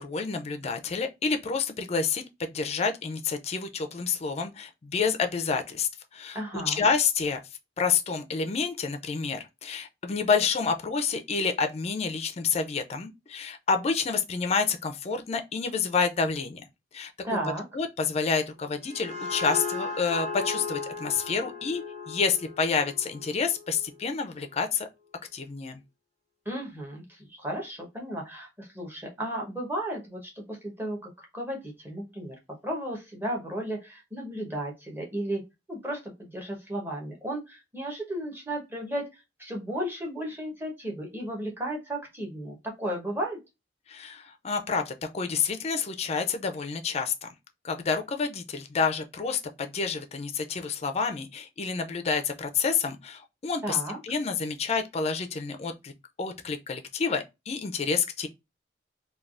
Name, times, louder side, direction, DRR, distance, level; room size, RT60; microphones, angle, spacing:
voice 1, 0.0-6.4 6.7-7.4 7.8-16.6 16.9-17.4 17.7-24.9 25.3-25.8 43.9-47.3 47.6-55.9 56.2-58.3, left 5 dB, 35° left, 0.4 m, -29 dB
voice 2, 6.3-6.9 17.2-17.6 26.4-32.4 32.6-35.4 35.7-43.4 53.6-54.0, right 1 dB, 10° right, 0.9 m, -34 dB
sound 1, 18.6-24.1, left 3 dB, 40° right, 0.8 m, -36 dB
3.3 x 2.3 x 2.4 m
head